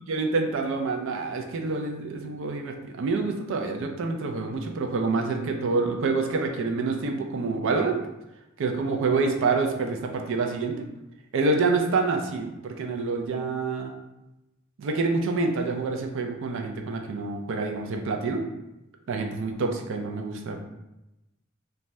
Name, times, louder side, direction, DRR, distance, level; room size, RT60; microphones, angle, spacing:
voice 1, 0.1-8.0 8.6-10.8 11.3-13.9 14.8-18.4 19.1-20.6, right 3 dB, 65° right, 4 dB, 0.4 m, -27 dB
2.6 x 2.2 x 3.1 m, 0.94 s
head